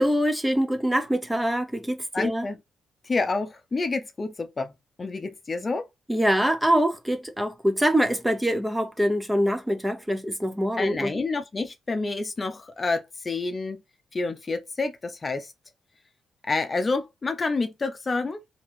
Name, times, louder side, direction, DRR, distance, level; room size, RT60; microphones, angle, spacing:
voice 1, 0.0-2.5 6.1-11.1, equal, 10° right, 0.6 m, -24 dB
voice 2, 2.1-2.6 3.0-5.9 10.8-13.8 14.1-15.5 16.4-18.4, left 3 dB, 30° left, 0.6 m, -28 dB
2.9 x 2.8 x 3.2 m
cardioid pair, 90°, 0 cm